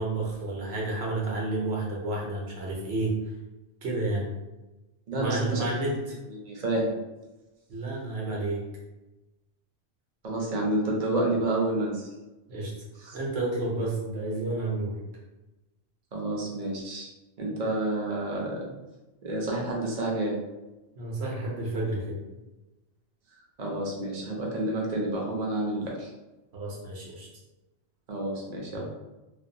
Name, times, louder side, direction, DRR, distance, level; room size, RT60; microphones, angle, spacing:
voice 1, 0.0-3.1 3.8-4.3 5.1-5.9 7.7-8.6 12.5-12.7 13.1-15.0 21.0-22.2 26.5-27.3 28.7-28.8, right 2 dB, 70° right, -3 dB, 1.0 m, -30 dB
voice 2, 5.1-5.7 6.4-6.9 10.2-12.1 13.0-13.2 16.1-17.1 17.4-18.6 19.2-20.4 23.6-26.1 28.1-28.8, right 1 dB, 45° right, -2 dB, 0.6 m, -29 dB
2.5 x 2.2 x 2.6 m, 1.0 s
omnidirectional pair, 1.1 m